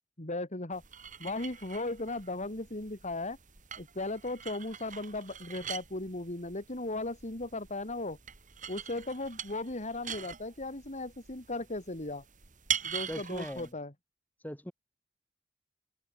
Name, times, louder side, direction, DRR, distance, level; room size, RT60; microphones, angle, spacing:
voice 1, 0.2-0.8 1.2-3.4 3.8-8.2 8.7-12.2 12.8-13.9, left 2 dB, 40° left, 3.0 m, -37 dB
sound 1, 0.7-13.7, right 8 dB, 40° right, 3.7 m, -43 dB
voice 2, 13.1-13.7 14.4-14.7, equal, 10° left, 6.6 m, -39 dB
head